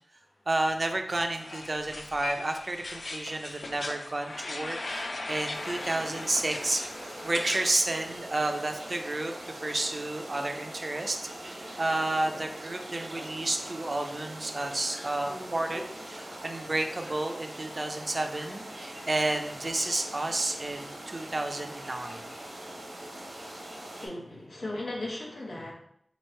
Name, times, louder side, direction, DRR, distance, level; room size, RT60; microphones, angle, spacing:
voice 1, 0.5-9.3 9.6-22.3, right 2 dB, 45° right, 5 dB, 0.5 m, -31 dB
sound 1, 1.2-7.7 7.9-9.2, left 2 dB, 70° left, 0.4 m, -39 dB
sound 2, 5.5-24.1, right 1 dB, 90° right, 1.1 m, -42 dB
voice 2, 24.0-25.7, left 1 dB, 90° left, -3 dB, 1.0 m, -36 dB
3.0 x 2.7 x 4.4 m, 0.71 s
wide cardioid pair, 75°, 0 cm